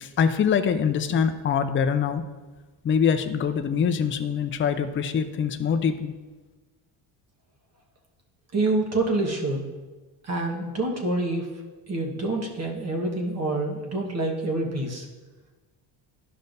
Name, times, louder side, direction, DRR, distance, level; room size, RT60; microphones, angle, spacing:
voice 1, 0.0-2.2 2.8-6.1, left 7 dB, 25° left, 8 dB, 0.4 m, -24 dB
voice 2, 8.5-9.7 10.2-11.5 11.9-15.0, right 2 dB, 35° right, 0 dB, 1.3 m, -27 dB
11.5 x 5.4 x 2.6 m, 1.3 s
cardioid pair, 105°, 48 cm